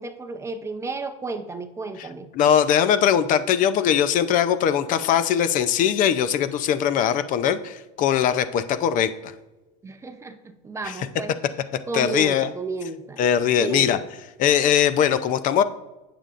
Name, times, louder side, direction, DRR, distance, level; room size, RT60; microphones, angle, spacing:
voice 1, 0.0-2.3 9.8-11.3 11.9-13.2 13.6-14.0, right 3 dB, 15° right, 9 dB, 0.6 m, -32 dB
voice 2, 2.3-9.3 10.8-11.1 11.9-12.5 13.2-14.0 14.4-15.6, left 9 dB, 40° left, 12 dB, 0.6 m, -21 dB
16.5 x 6.8 x 2.5 m, 1.1 s
supercardioid pair, 140°, 20 cm